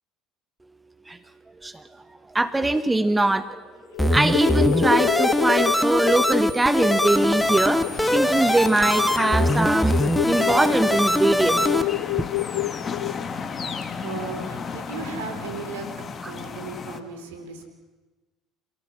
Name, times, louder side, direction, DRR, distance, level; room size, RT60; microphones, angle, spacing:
voice 1, 2.3-3.6 4.1-7.9 8.1-11.6, right 2 dB, 15° right, 13 dB, 1.1 m, -22 dB
sound 1, 3.4-3.6 3.9-13.2, left 17 dB, 75° left, 0.9 m, -29 dB
sound 2, 4.0-11.8, left 1 dB, 5° left, 1.4 m, -22 dB
sound 3, 7.0-17.0, left 5 dB, 35° left, 2.0 m, -34 dB
voice 2, 12.8-17.6, right 4 dB, 75° right, 6 dB, 3.6 m, -37 dB
27.5 x 16.5 x 7.5 m, 1.2 s
hypercardioid pair, 60°, 0 cm